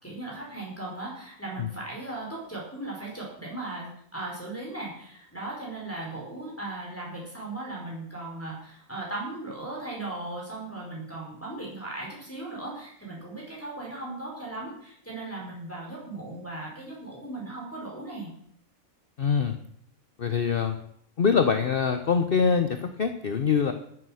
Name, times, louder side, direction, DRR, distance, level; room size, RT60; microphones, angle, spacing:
voice 1, 0.0-18.3, right 2 dB, 10° left, -4 dB, 4.5 m, -37 dB
voice 2, 19.2-19.6 20.2-20.8 21.2-23.7, left 6 dB, 45° left, 8 dB, 1.0 m, -24 dB
14.0 x 9.6 x 6.4 m, 0.69 s
omnidirectional pair, 1.5 m